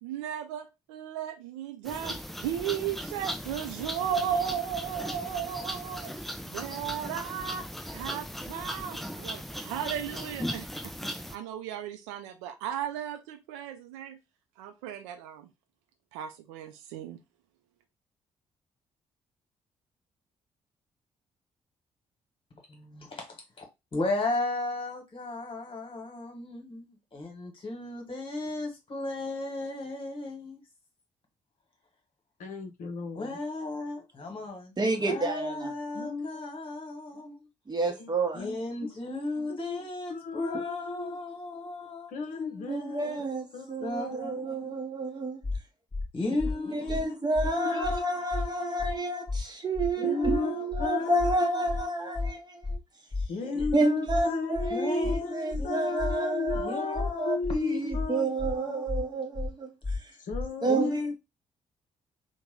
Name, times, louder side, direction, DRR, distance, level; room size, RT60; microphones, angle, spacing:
voice 1, 0.0-7.7 7.9-10.7 11.0-14.2 14.6-15.5 16.1-17.2, right 9 dB, 75° right, 0.5 m, -35 dB
sound 1, 1.9-11.4, equal, ahead, 0.4 m, -38 dB
voice 2, 22.7-23.6 23.9-30.6 33.1-37.5 38.3-43.3 43.8-44.8 46.1-49.3 50.0-52.4 53.2-59.1 60.6-61.1, left 2 dB, 35° left, 1.3 m, -36 dB
voice 3, 32.4-33.4 35.9-36.3 38.0-38.1 38.3-38.5 38.8-38.9 39.6-39.8 40.1-41.2 42.1-43.2 43.5-44.1 46.3-46.7 47.6-48.0 50.0-50.5 50.8-51.7 53.3-58.3 60.2-61.1, left 4 dB, 55° left, 0.6 m, -34 dB
voice 4, 34.8-35.7 37.7-38.5 42.7-45.4 46.7-52.8 53.7-59.7 60.6-61.1, right 2 dB, 25° right, 0.8 m, -30 dB
sound 2, 45.4-45.6 45.9-46.1 46.4-46.5 46.9-47.0 47.3-47.5 47.8-48.0 48.3-48.5 48.8-48.9 49.3-49.4 49.7-49.9 50.2-50.4 50.7-50.9 51.2-51.3 51.7-51.8 52.1-52.3 52.6-52.8 53.1-53.3 53.6-53.7 54.1-54.2 54.5-54.7 55.0-55.2 55.5-55.7 56.0-56.1 56.5-56.6 56.9-57.1 57.4-57.6 57.9-58.1 58.4-58.5 58.9-59.0 59.3-59.5 59.8-60.0 60.3-60.5, left 3 dB, 20° left, 0.9 m, -31 dB
2.8 x 2.2 x 3.6 m
figure-of-eight pair, 40°, 16 cm